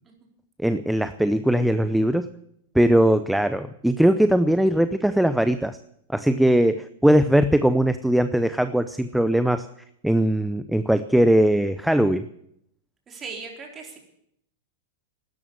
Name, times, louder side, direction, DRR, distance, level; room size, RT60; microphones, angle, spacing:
voice 1, 0.6-2.3 2.7-5.8 6.1-9.7 10.0-12.3, right 1 dB, ahead, 11 dB, 0.6 m, -20 dB
voice 2, 13.1-14.0, right 4 dB, 25° right, 1 dB, 4.2 m, -38 dB
13.0 x 11.0 x 9.7 m, 0.74 s
hypercardioid pair, 125°, 0 cm